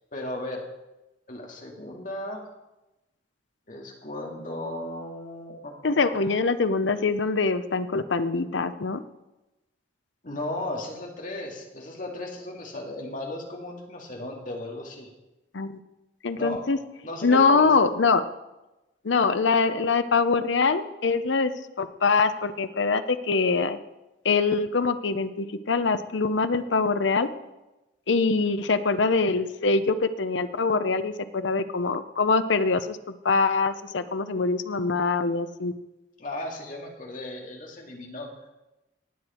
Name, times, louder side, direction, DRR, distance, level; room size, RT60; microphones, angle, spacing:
voice 1, 0.1-0.6 1.3-2.4 3.7-6.2 10.2-15.1 16.3-16.6 17.0-17.7 36.2-38.3, left 1 dB, 45° left, 0 dB, 2.4 m, -35 dB
voice 2, 5.8-9.0 15.5-15.8 16.2-16.8 17.2-18.2 19.0-21.5 21.8-23.8 24.2-27.3 28.1-33.0 33.2-35.7, left 4 dB, 80° left, 11 dB, 0.7 m, -23 dB
18.5 x 8.1 x 4.4 m, 0.99 s
head